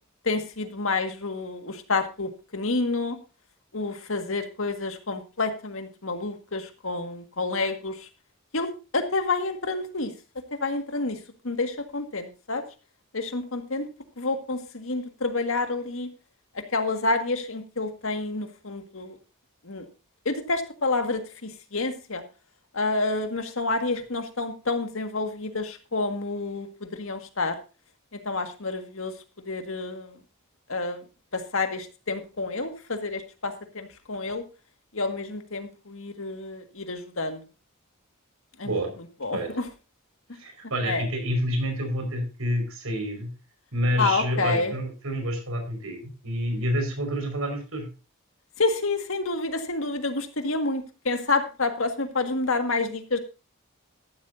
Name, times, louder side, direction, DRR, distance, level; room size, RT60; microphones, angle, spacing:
voice 1, 0.2-3.2 3.7-8.1 8.5-10.1 10.6-11.2 11.4-12.6 13.1-13.8 14.2-16.1 16.7-19.2 19.6-19.8 20.2-22.2 22.7-27.6 28.1-29.1 29.4-30.1 30.7-31.0 31.3-34.4 34.9-37.4 38.6-38.8 39.2-39.6 40.8-41.0 44.0-44.7 48.6-53.2, left 3 dB, 70° left, 7 dB, 1.8 m, -29 dB
voice 2, 40.3-43.3 43.7-47.9, equal, 80° right, 4 dB, 5.0 m, -28 dB
14.0 x 12.0 x 2.7 m, 0.31 s
head